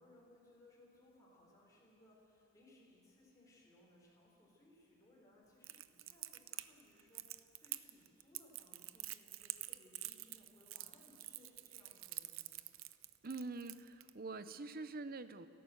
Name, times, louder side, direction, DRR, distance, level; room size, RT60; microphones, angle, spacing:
voice 1, 0.0-12.6, left 1 dB, 15° left, -4 dB, 4.6 m, -65 dB
Crackle, 5.6-14.1, right 16 dB, 80° right, 0.7 m, -47 dB
voice 2, 13.2-15.5, right 3 dB, 45° right, 12 dB, 0.8 m, -45 dB
29.5 x 11.5 x 8.0 m, 2.6 s
head